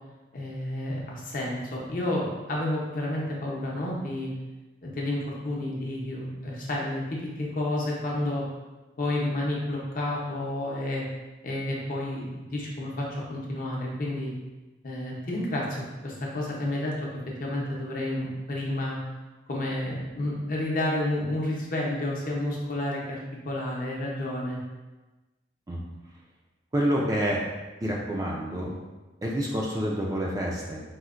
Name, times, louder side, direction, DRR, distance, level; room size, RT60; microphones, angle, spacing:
voice 1, 0.3-4.3 4.8-8.5 9.0-11.1 11.4-14.3 14.8-17.1 17.4-19.0 19.5-23.2 23.5-24.6, left 1 dB, 45° left, -3 dB, 0.6 m, -30 dB
voice 2, 26.7-27.4 27.8-28.7 29.2-30.8, equal, 20° right, -3 dB, 0.3 m, -28 dB
4.2 x 2.1 x 2.4 m, 1.1 s
head